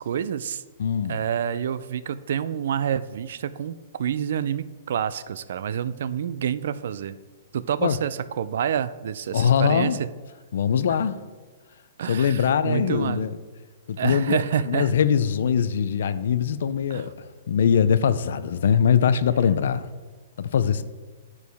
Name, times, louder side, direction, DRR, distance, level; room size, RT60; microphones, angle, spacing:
voice 1, 0.0-0.6 1.1-7.2 7.5-10.1 12.0-13.2 14.0-14.9 16.9-17.1, right 8 dB, 55° right, 0.3 m, -28 dB
voice 2, 0.8-1.2 7.8-8.0 9.3-10.0 10.5-11.2 12.1-13.4 13.9-17.1 17.5-19.9 20.4-20.8, left 7 dB, 60° left, 0.4 m, -22 dB
10.5 x 4.7 x 3.4 m
hypercardioid pair, 175°, 0 cm